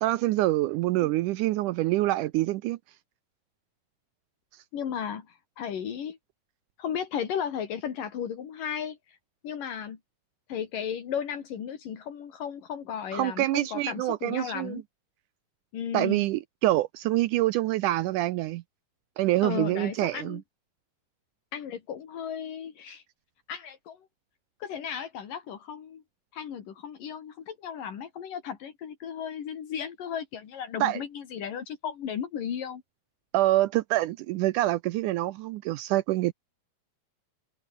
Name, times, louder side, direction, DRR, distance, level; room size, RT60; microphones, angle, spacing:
voice 1, 0.0-2.8 13.1-14.8 15.9-18.6 19.2-20.4 30.8-31.0 33.3-36.3, right 16 dB, 80° right, 2.1 m, -26 dB
voice 2, 4.7-6.2 6.8-9.2 9.4-10.0 10.5-14.8 15.7-16.3 19.4-20.4 21.5-23.0 23.5-24.0 24.6-26.0 26.3-32.8, left 8 dB, 80° left, 4.2 m, -35 dB
omnidirectional pair, 3.8 m